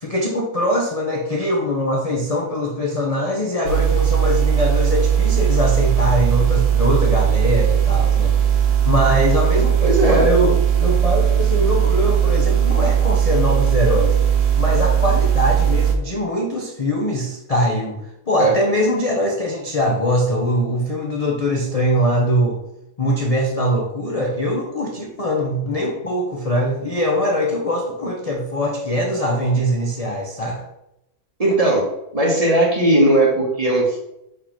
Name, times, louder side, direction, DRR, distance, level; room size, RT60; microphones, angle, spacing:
voice 1, 0.0-8.4 8.8-10.5 10.8-14.2 14.6-18.0 18.3-22.6 23.0-30.6, equal, 35° left, -1 dB, 0.6 m, -22 dB
sound 1, 3.7-16.0, right 9 dB, 75° right, 1.3 m, -18 dB
voice 2, 9.8-10.5 18.4-18.5 31.4-34.0, right 1 dB, 25° right, -2 dB, 1.2 m, -17 dB
4.8 x 3.8 x 5.7 m, 0.85 s
omnidirectional pair, 1.7 m